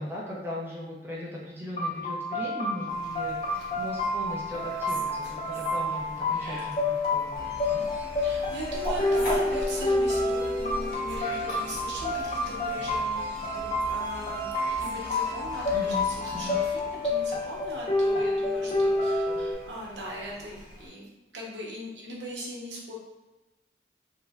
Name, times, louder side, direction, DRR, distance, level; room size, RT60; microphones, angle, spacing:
voice 1, 0.0-7.8 15.7-16.6, left 1 dB, 10° right, -5 dB, 0.4 m, -38 dB
sound 1, 1.8-19.5, left 2 dB, 35° left, 0.5 m, -29 dB
Fowl, 2.9-20.9, equal, 70° left, 1.2 m, -42 dB
sound 2, 7.3-17.9, right 1 dB, 50° right, 0.9 m, -43 dB
voice 2, 8.2-14.5 14.8-22.9, equal, 85° right, -3 dB, 0.8 m, -39 dB
4.3 x 2.1 x 2.3 m, 1.1 s
head